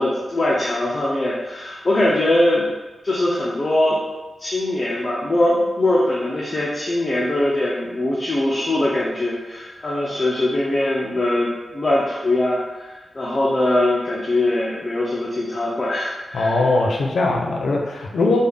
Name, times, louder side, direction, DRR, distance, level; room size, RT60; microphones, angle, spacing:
voice 1, 0.0-2.7 3.0-4.0 4.4-16.6, left 1 dB, 30° left, -5 dB, 0.5 m, -21 dB
voice 2, 16.3-18.4, left 2 dB, 80° left, 0 dB, 0.5 m, -20 dB
3.4 x 2.3 x 3.3 m, 1.2 s
wide cardioid pair, 150°, 0 cm